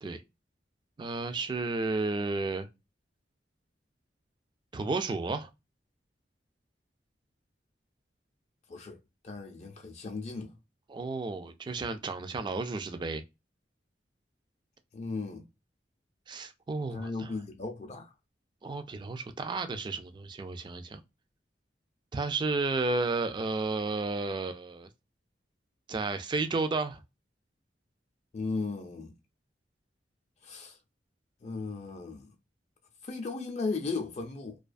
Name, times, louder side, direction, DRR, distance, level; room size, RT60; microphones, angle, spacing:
voice 1, 1.0-2.7 4.7-5.5 10.9-13.2 16.3-17.3 18.6-21.0 22.1-24.9 25.9-27.0, right 3 dB, 25° right, 0.3 m, -32 dB
voice 2, 9.2-10.5 14.9-15.4 16.9-18.1 28.3-29.1 30.4-30.8 31.4-32.3 33.0-34.6, left 3 dB, 40° left, 0.4 m, -36 dB
2.4 x 2.3 x 2.4 m
head